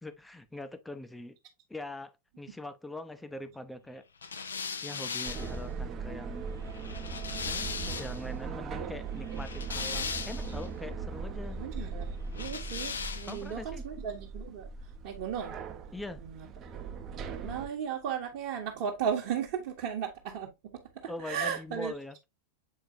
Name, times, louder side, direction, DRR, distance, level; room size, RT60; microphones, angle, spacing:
voice 1, 0.0-1.4 1.7-4.5 4.8-6.5 7.4-11.6 13.3-13.8 15.9-16.2 21.1-22.2, left 1 dB, 5° left, 0.8 m, -43 dB
sound 1, 4.2-8.3 9.2-10.7 12.3-13.6, left 5 dB, 70° left, 0.8 m, -38 dB
sound 2, 5.3-17.7, right 4 dB, 30° right, 0.8 m, -39 dB
voice 2, 11.6-14.7 15.0-15.5 16.2-16.5 17.1-21.9, right 7 dB, 50° right, 1.3 m, -36 dB
7.6 x 4.5 x 2.8 m
figure-of-eight pair, 90°, 0 cm